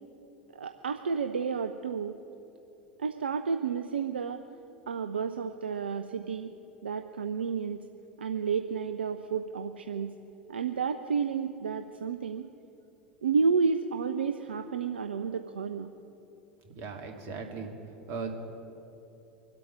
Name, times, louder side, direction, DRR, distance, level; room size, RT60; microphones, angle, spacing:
voice 1, 0.5-2.2 3.0-4.4 4.9-6.5 6.8-7.8 8.2-10.1 10.5-12.5 13.2-15.9, right 5 dB, 80° right, 8 dB, 0.5 m, -31 dB
voice 2, 16.8-17.7 18.1-18.4, right 5 dB, 50° right, 3 dB, 2.3 m, -37 dB
24.5 x 8.4 x 5.0 m, 2.9 s
figure-of-eight pair, 75°, 6 cm